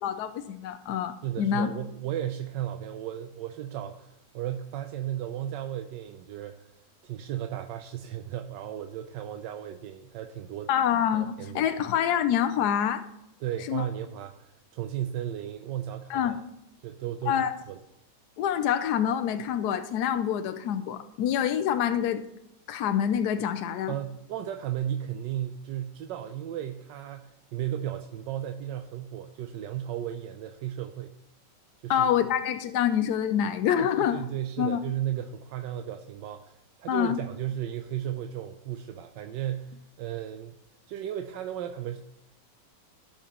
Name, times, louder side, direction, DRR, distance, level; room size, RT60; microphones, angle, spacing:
voice 1, 0.0-1.7 10.7-13.0 13.7-13.9 16.1-16.4 17.3-17.5 18.4-22.2 22.7-23.9 31.9-34.2 34.6-34.8 36.9-37.2, left 9 dB, 75° left, 9 dB, 1.1 m, -26 dB
voice 2, 1.2-6.7 7.0-10.7 11.1-11.6 13.4-16.4 16.8-17.4 17.7-17.8 23.9-31.1 31.8-32.1 33.8-40.6 40.9-42.0, right 11 dB, 85° right, 6 dB, 1.3 m, -35 dB
17.0 x 5.9 x 2.9 m, 0.83 s
omnidirectional pair, 1.9 m